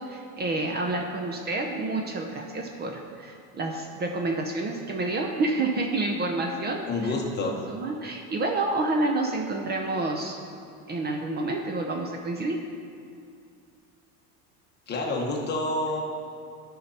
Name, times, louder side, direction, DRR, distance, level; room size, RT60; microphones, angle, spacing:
voice 1, 0.0-7.1 7.4-10.4 10.9-12.6, right 2 dB, 25° right, 2 dB, 0.7 m, -29 dB
voice 2, 6.9-7.5 14.9-16.0, left 2 dB, 30° left, -1 dB, 1.3 m, -28 dB
13.0 x 5.7 x 4.2 m, 2.5 s
cardioid pair, 140°, 36 cm